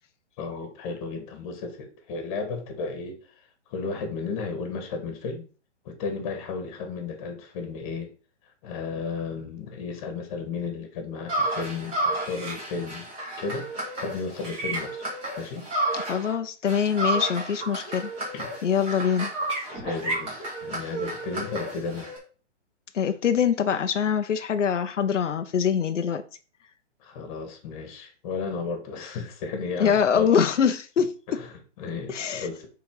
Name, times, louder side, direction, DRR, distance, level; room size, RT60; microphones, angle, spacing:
voice 1, 0.4-3.2 3.7-5.4 5.9-8.1 8.6-13.1 13.4-13.7 13.9-15.1 15.4-15.7 18.3-18.5 19.7-22.1 27.0-30.3 31.3-32.7, left 4 dB, 30° left, 1.8 m, -34 dB
sound 1, 11.3-16.3 16.6-22.2, right 2 dB, 15° right, 2.3 m, -31 dB
voice 2, 15.9-18.1 18.6-19.3 22.9-26.2 29.8-31.1 32.1-32.5, left 7 dB, 85° left, 0.8 m, -24 dB
7.0 x 4.1 x 4.8 m
hypercardioid pair, 150°, 36 cm